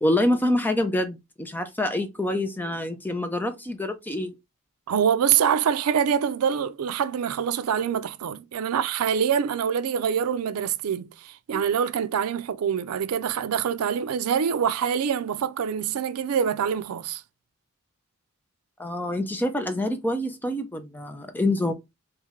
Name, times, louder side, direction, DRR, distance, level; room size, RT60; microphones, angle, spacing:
voice 1, 0.0-4.3 11.5-11.6 18.8-21.7, left 1 dB, 10° left, 0.5 m, -26 dB
voice 2, 4.9-17.2, right 8 dB, 85° right, 0.4 m, -25 dB
3.2 x 3.1 x 3.6 m
head